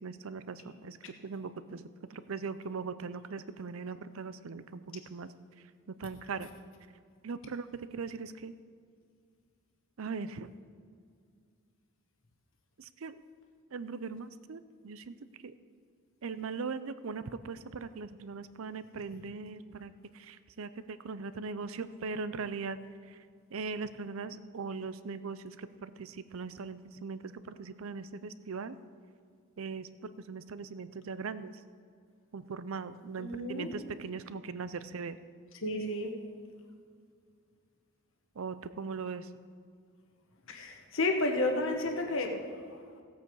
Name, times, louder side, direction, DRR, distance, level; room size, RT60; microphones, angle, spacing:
voice 1, 0.0-1.0 1.2-1.8 2.1-5.3 6.0-6.5 7.2-8.5 10.0-10.5 12.8-13.1 13.7-15.1 15.4-15.5 16.2-22.8 23.5-28.8 29.6-29.9 30.3-31.6 32.3-35.2 38.4-39.3, right 4 dB, 70° right, 14 dB, 0.5 m, -40 dB
voice 2, 33.2-33.7 35.6-36.1 40.5-42.8, left 2 dB, 65° left, 3 dB, 1.2 m, -32 dB
16.5 x 8.2 x 4.7 m, 2.2 s
head